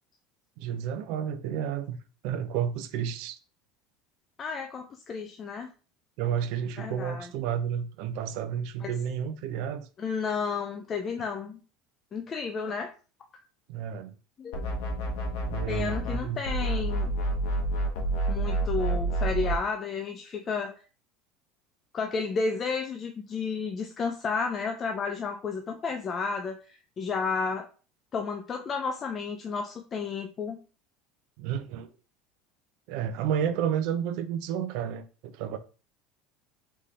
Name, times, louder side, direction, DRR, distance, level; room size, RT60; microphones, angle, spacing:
voice 1, 0.6-2.0 2.2-3.4 6.2-9.9 13.7-14.1 15.5-16.4 31.4-31.9 32.9-35.6, right 8 dB, 55° right, 0.5 m, -31 dB
voice 2, 4.4-5.7 6.8-7.3 8.8-8.9 10.0-11.6 12.1-12.9 14.4-14.7 15.7-17.2 18.3-20.7 21.9-27.7 28.1-30.6, left 5 dB, 20° left, 0.4 m, -32 dB
sound 1, 14.5-16.2 16.4-19.6, right 2 dB, 70° left, 1.0 m, -28 dB
4.1 x 3.6 x 3.2 m
cardioid pair, 175°, 0 cm